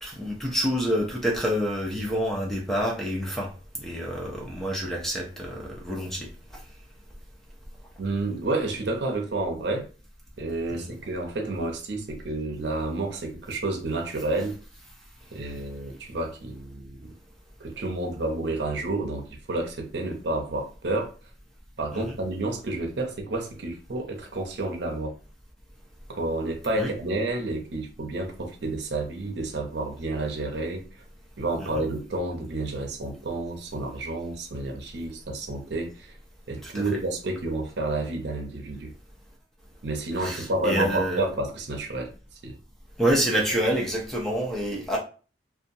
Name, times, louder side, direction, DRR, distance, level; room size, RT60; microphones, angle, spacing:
voice 1, 0.0-3.5 3.8-6.3 10.7-11.0 22.1-22.2 26.8-26.9 31.8-31.9 36.6-36.8 40.2-41.2 43.0-45.0, equal, ahead, -2 dB, 0.5 m, -27 dB
voice 2, 8.0-9.9 10.4-14.6 15.3-17.1 17.6-21.1 21.8-25.1 26.1-30.8 31.4-36.1 36.5-38.9 39.8-42.1 42.4-42.6, right 2 dB, 65° right, 2 dB, 0.6 m, -30 dB
2.8 x 2.2 x 2.6 m, 0.37 s
head